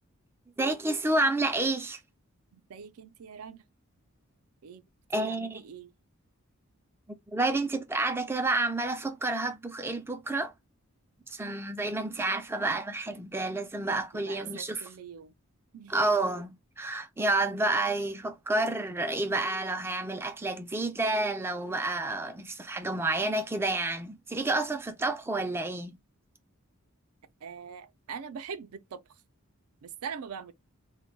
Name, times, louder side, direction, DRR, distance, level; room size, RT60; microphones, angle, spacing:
voice 1, 0.6-2.0 5.1-5.6 7.1-10.5 11.3-14.9 15.9-26.0, right 2 dB, 10° right, 0.3 m, -29 dB
voice 2, 2.5-3.6 4.6-4.8 5.3-5.9 14.1-15.3 15.7-15.9 27.4-29.2 29.8-30.5, right 6 dB, 80° right, 0.4 m, -42 dB
2.2 x 2.2 x 3.8 m
head